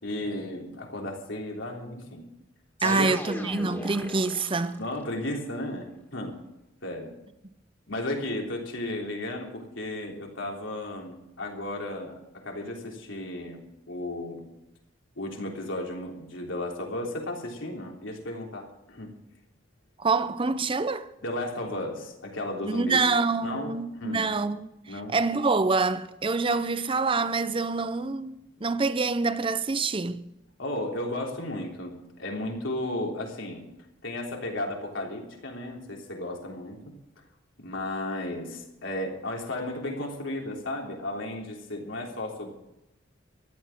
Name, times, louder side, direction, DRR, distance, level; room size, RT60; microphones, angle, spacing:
voice 1, 0.0-2.3 2.8-3.1 4.8-6.4 6.8-7.1 7.9-14.4 15.2-19.1 21.2-23.0 23.4-23.7 24.0-24.3 24.9-25.2 30.6-33.6 34.0-36.8 37.6-42.5, left 1 dB, 80° left, 3.4 m, -34 dB
sound 1, 2.8-5.0, left 1 dB, 10° left, 2.1 m, -38 dB
voice 2, 2.8-4.8 20.0-21.1 22.6-30.2, right 3 dB, 25° right, 0.7 m, -26 dB
14.5 x 11.5 x 6.1 m
head